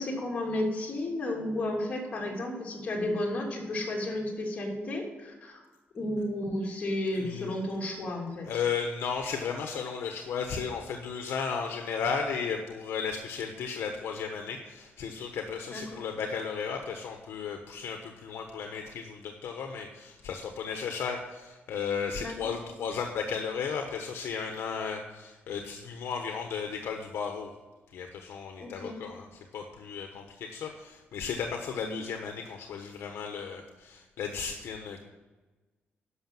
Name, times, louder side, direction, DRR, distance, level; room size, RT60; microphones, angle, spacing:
voice 1, 0.0-5.6 5.9-8.5 15.7-16.0 22.2-22.5 28.6-29.0 31.8-32.0, left 1 dB, 35° left, -2 dB, 2.9 m, -33 dB
voice 2, 7.1-7.6 8.4-27.5 27.9-29.3 29.5-35.0, left 6 dB, 75° left, 4 dB, 1.1 m, -34 dB
11.5 x 6.4 x 7.7 m, 1.2 s
cardioid pair, 140°, 4 cm